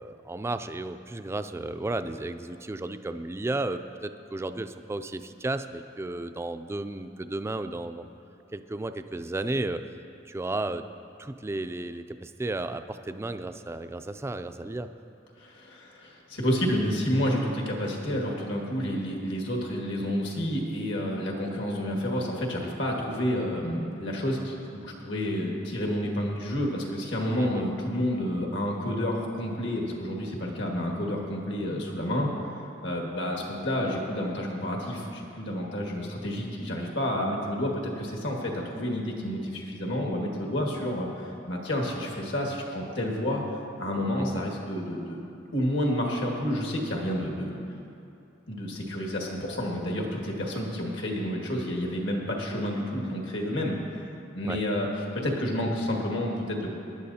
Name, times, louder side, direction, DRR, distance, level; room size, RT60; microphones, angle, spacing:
voice 1, 0.0-8.1 8.5-9.8 10.3-10.8 11.2-14.9 27.4-27.6 44.2-44.5 54.4-54.6, right 2 dB, 15° right, 10 dB, 0.3 m, -33 dB
voice 2, 15.4-32.3 32.8-43.4 43.8-45.3 45.5-47.6 48.5-54.0 54.3-54.9 55.1-56.8, equal, 75° left, -1 dB, 1.9 m, -30 dB
18.0 x 11.0 x 2.8 m, 2.7 s
head